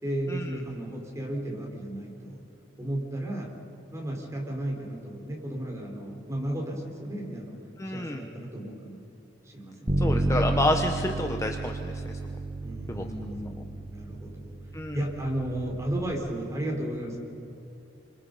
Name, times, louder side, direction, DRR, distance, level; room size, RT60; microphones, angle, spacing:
voice 1, 0.0-2.4 2.8-3.5 3.9-7.6 7.8-9.0 9.4-10.3 12.6-14.6 14.9-17.2, right 1 dB, 15° right, -1 dB, 4.4 m, -34 dB
voice 2, 7.8-8.2 10.0-12.2 12.9-13.1 14.7-15.0, left 1 dB, 15° left, 4 dB, 0.9 m, -29 dB
Bass guitar, 9.9-16.1, right 2 dB, 40° right, 1.6 m, -31 dB
28.0 x 25.5 x 5.5 m, 3.0 s
head